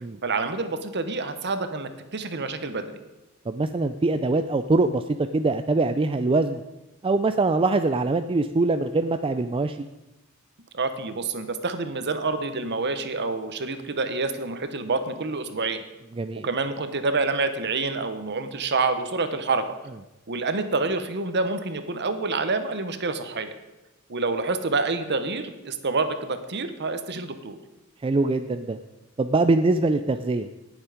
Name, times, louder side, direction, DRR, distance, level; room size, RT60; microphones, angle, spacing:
voice 1, 0.2-2.9 10.7-15.8 16.4-19.6 20.3-23.5 24.1-27.6, right 3 dB, 55° right, 9 dB, 1.1 m, -27 dB
voice 2, 3.5-5.0 5.3-6.6 7.0-9.8 16.2-16.5 28.0-28.8 29.2-30.5, right 3 dB, 25° right, 8 dB, 0.4 m, -23 dB
18.5 x 7.2 x 5.1 m, 1.0 s
head